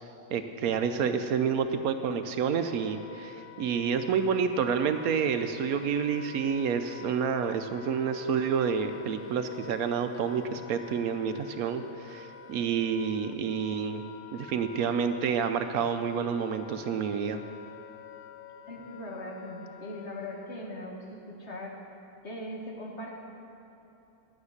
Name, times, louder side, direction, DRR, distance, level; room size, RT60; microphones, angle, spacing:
voice 1, 0.3-14.0 14.3-17.4, right 6 dB, 75° right, 8 dB, 1.0 m, -29 dB
Wind instrument woodwind instrument, 2.0-20.8, left 8 dB, 85° left, 1.2 m, -49 dB
voice 2, 18.7-21.8 22.2-23.2, left 1 dB, 45° left, -1 dB, 1.7 m, -40 dB
12.0 x 9.6 x 6.5 m, 3.0 s
omnidirectional pair, 1.7 m